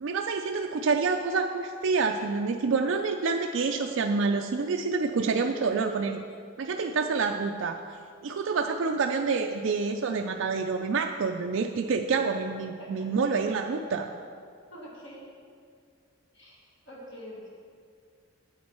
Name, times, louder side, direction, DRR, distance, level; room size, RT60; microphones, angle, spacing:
voice 1, 0.0-6.2 6.6-7.8 8.2-14.1, right 4 dB, 65° right, 3 dB, 0.4 m, -27 dB
voice 2, 14.7-15.2 16.3-17.5, equal, 55° left, -5 dB, 1.9 m, -45 dB
8.8 x 8.5 x 4.4 m, 2.1 s
head